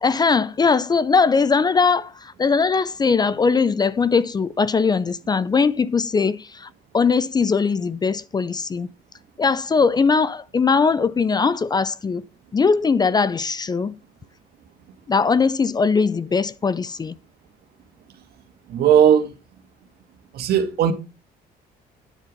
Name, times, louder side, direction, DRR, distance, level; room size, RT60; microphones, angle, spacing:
voice 1, 0.0-8.9 9.4-12.2 12.5-13.9 15.1-17.1, left 5 dB, 25° left, 0.5 m, -20 dB
voice 2, 18.7-19.3 20.3-20.9, right 9 dB, 70° right, 2.0 m, -17 dB
9.4 x 6.8 x 5.2 m
cardioid pair, 110°, 17 cm